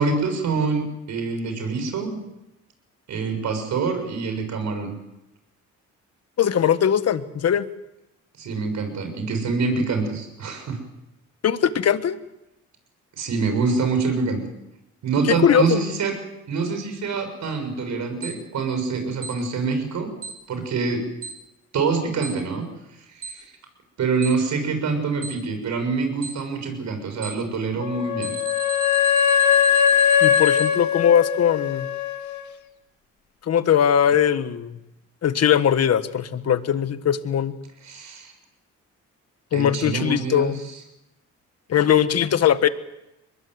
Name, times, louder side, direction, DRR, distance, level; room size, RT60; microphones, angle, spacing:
voice 1, 0.0-2.2 3.1-4.9 8.4-10.8 13.2-14.4 15.0-16.2 16.5-20.1 20.5-21.1 21.7-22.6 23.1-23.5 24.0-28.3 37.8-38.3 39.5-40.5, right 4 dB, 70° right, 6 dB, 6.8 m, -25 dB
voice 2, 6.4-7.7 11.4-12.2 15.3-15.8 30.2-31.9 33.5-34.8 35.2-37.5 39.5-40.6 41.7-42.7, left 9 dB, 55° left, 12 dB, 1.5 m, -20 dB
Alarm, 18.2-18.3 19.2-19.3 20.2-20.3 21.2-21.3 22.2-22.3 23.2-23.3 24.2-24.3 25.2-25.3 26.2-26.3 27.2-27.3 28.2-30.7, right 5 dB, 50° right, 7.1 m, -33 dB
Wind instrument woodwind instrument, 27.8-32.4, left 8 dB, 75° left, 2.2 m, -20 dB
23.0 x 20.5 x 8.0 m, 0.91 s
cardioid pair, 90°, 30 cm